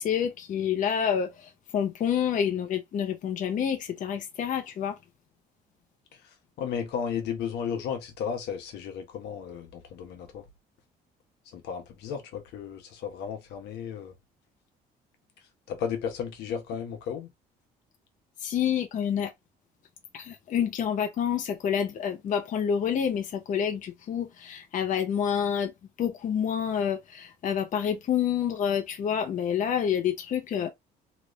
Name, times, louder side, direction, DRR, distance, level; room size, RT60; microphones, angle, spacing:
voice 1, 0.0-5.0 18.4-19.3 20.1-25.7 26.0-30.7, left 8 dB, 50° left, 0.8 m, -28 dB
voice 2, 6.6-10.4 11.5-14.1 15.7-17.3, left 7 dB, 80° left, 1.1 m, -34 dB
3.0 x 2.5 x 3.1 m
cardioid pair, 110°, 17 cm